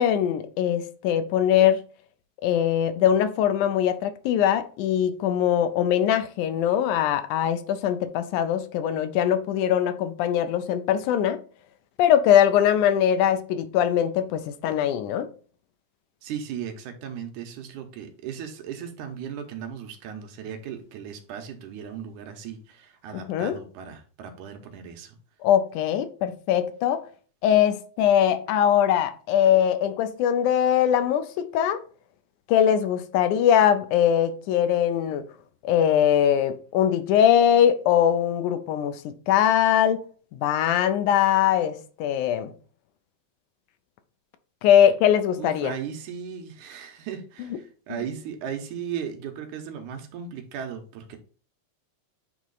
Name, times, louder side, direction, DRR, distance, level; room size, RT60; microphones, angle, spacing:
voice 1, 0.0-1.8 2.4-11.4 12.0-15.3 23.1-23.6 25.4-27.0 27.4-31.8 32.5-35.2 35.6-40.0 40.3-42.5 44.6-45.7, left 10 dB, 90° left, 2.2 m, -21 dB
voice 2, 16.2-25.2 45.4-51.2, right 8 dB, 85° right, 2.4 m, -36 dB
8.6 x 3.1 x 3.9 m
omnidirectional pair, 3.4 m